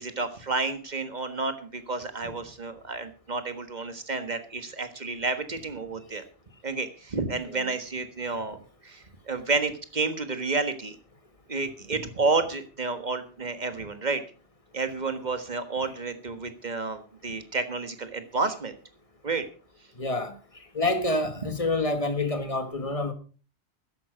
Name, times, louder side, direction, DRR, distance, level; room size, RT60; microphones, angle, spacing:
voice 1, 0.0-6.2 6.6-10.9 11.5-14.2 14.7-18.7 19.2-19.4 21.4-21.5, right 3 dB, 45° right, 1.6 m, -30 dB
voice 2, 20.0-20.4 20.7-23.1, left 2 dB, 30° left, 1.7 m, -27 dB
13.5 x 11.0 x 5.0 m
omnidirectional pair, 1.1 m